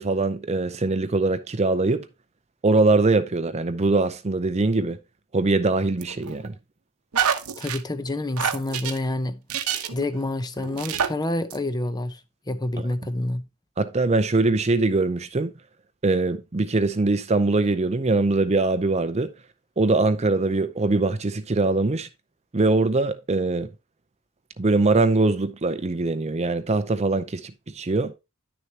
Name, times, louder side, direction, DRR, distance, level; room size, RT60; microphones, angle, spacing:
voice 1, 0.0-2.1 2.6-5.0 5.3-6.5 12.8-12.9 13.8-15.5 16.0-19.3 19.8-22.1 22.5-23.7 24.6-28.1, right 3 dB, 30° right, 0.5 m, -22 dB
sound 1, 6.0-6.5 7.1-7.8 8.4-9.0 9.5-10.1 10.6-11.1 11.5-11.6, right 7 dB, 80° right, 0.9 m, -27 dB
voice 2, 7.6-9.4 9.9-12.2 12.5-13.4, left 1 dB, 20° left, 0.7 m, -28 dB
10.5 x 6.6 x 2.8 m
head